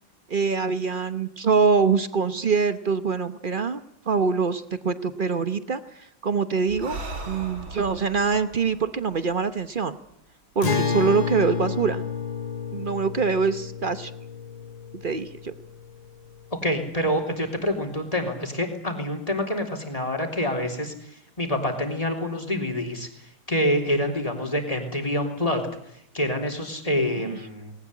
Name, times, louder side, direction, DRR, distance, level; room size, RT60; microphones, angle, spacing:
voice 1, 0.3-3.8 4.1-7.0 7.3-10.0 10.5-12.0 12.7-14.1 14.9-15.5 27.2-27.4, right 5 dB, 40° right, 11 dB, 0.7 m, -24 dB
Breathing, 6.7-10.2, right 2 dB, 85° right, 3.8 m, -39 dB
Acoustic guitar, 10.6-16.1, left 5 dB, 70° left, 2.9 m, -30 dB
voice 2, 16.6-25.6 26.1-27.7, left 1 dB, 15° left, 3 dB, 3.5 m, -27 dB
19.5 x 18.5 x 9.8 m, 0.74 s
omnidirectional pair, 2.1 m